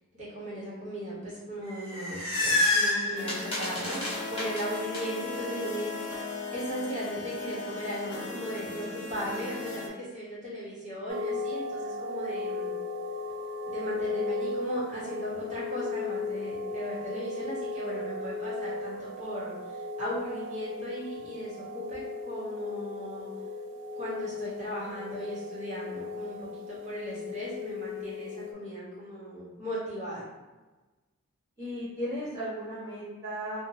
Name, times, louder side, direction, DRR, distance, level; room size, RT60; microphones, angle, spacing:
voice 1, 0.1-4.0 4.3-6.1 6.5-12.7 13.7-23.3 23.9-30.3, equal, 30° right, -9 dB, 1.1 m, -37 dB
sound 1, 1.7-5.0, left 2 dB, 25° left, 0.8 m, -28 dB
sound 2, 3.2-9.9, left 3 dB, 50° left, 0.4 m, -37 dB
sound 3, 11.1-28.5, left 3 dB, 50° right, 0.3 m, -36 dB
voice 2, 31.6-33.6, equal, 15° right, -13 dB, 1.4 m, -35 dB
2.7 x 2.2 x 2.8 m, 1.2 s
head